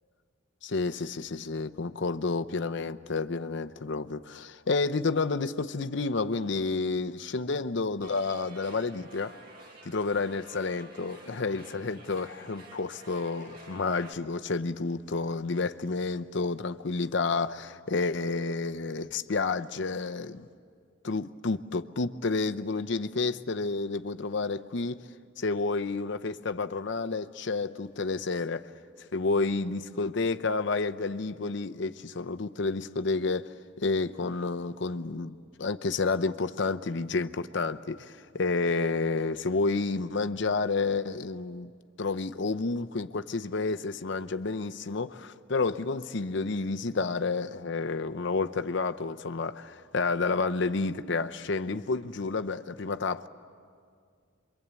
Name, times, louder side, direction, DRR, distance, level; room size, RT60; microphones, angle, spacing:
voice 1, 0.6-9.4 9.8-20.5 21.0-25.0 25.4-28.7 29.1-41.7 42.0-53.3, left 3 dB, 60° left, 0.7 m, -30 dB
sound 1, 8.0-14.1, right 2 dB, 45° right, 1.9 m, -51 dB
27.5 x 23.5 x 8.2 m
head